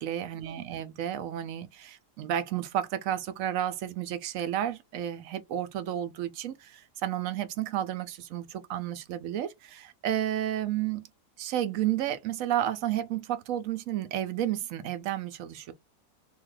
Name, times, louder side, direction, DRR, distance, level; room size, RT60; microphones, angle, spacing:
voice 1, 0.0-11.1 11.4-15.7, right 11 dB, 70° right, 0.9 m, -32 dB
2.8 x 2.4 x 3.1 m
omnidirectional pair, 1.7 m